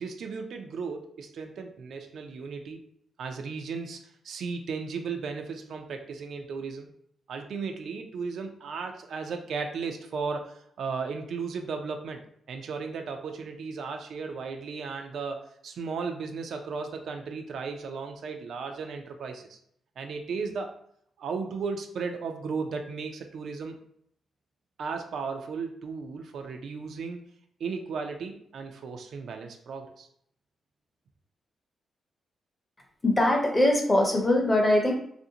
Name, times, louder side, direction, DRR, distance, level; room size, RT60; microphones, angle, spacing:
voice 1, 0.0-2.8 3.2-6.9 7.3-12.2 12.5-19.6 20.0-20.7 21.2-23.8 24.8-27.2 27.6-30.1, right 5 dB, 60° right, 5 dB, 0.4 m, -35 dB
voice 2, 33.0-34.9, left 1 dB, 15° left, 1 dB, 0.6 m, -22 dB
3.2 x 2.5 x 2.7 m, 0.68 s
wide cardioid pair, 160°, 0 cm